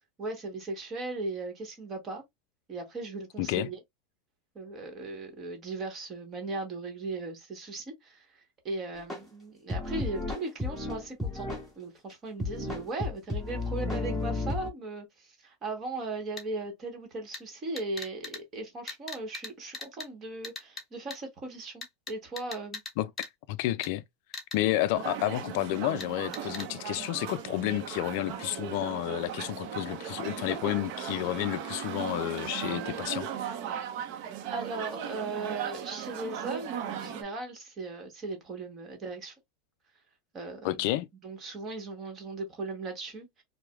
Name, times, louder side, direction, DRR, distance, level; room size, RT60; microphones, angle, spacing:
voice 1, 0.2-2.2 2.7-3.8 4.5-8.4 8.6-11.5 11.8-22.8 34.5-39.3 40.3-40.9 41.2-43.4, right 3 dB, 25° right, 1.1 m, -38 dB
voice 2, 3.4-3.7 23.0-24.0 24.5-33.5 40.6-41.1, left 15 dB, 55° left, 0.3 m, -31 dB
sound 1, 9.1-9.2 9.7-11.7 12.1-12.2 12.4-14.7, left 2 dB, ahead, 1.7 m, -33 dB
sound 2, 16.4-16.5 17.3-17.4 17.8-18.4 18.9-19.5 19.7-20.1 20.4-20.8 21.1-21.2 21.8-22.9 23.2-23.3 23.8-23.9 24.3-24.6 26.0-26.1 26.3-26.7, left 4 dB, 15° left, 0.9 m, -38 dB
sound 3, 24.9-37.2, right 9 dB, 50° right, 0.6 m, -37 dB
4.6 x 2.0 x 2.3 m
supercardioid pair, 150°, 0 cm